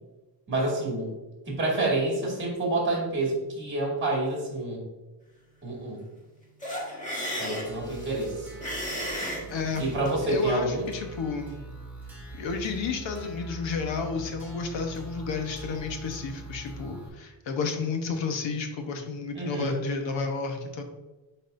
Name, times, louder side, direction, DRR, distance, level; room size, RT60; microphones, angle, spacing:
voice 1, 0.5-1.1 1.5-4.8 5.6-6.0 7.4-8.5 9.8-10.9 19.3-19.8, right 2 dB, 25° right, -2 dB, 2.2 m, -28 dB
sound 1, 6.6-10.2, equal, 15° left, 1.7 m, -35 dB
sound 2, 7.6-17.1, right 1 dB, 5° right, 1.8 m, -43 dB
voice 2, 9.5-9.9 10.3-11.6 12.3-20.8, left 4 dB, 80° left, 4 dB, 1.1 m, -31 dB
10.5 x 4.1 x 2.6 m, 1.1 s
wide cardioid pair, 175°, 44 cm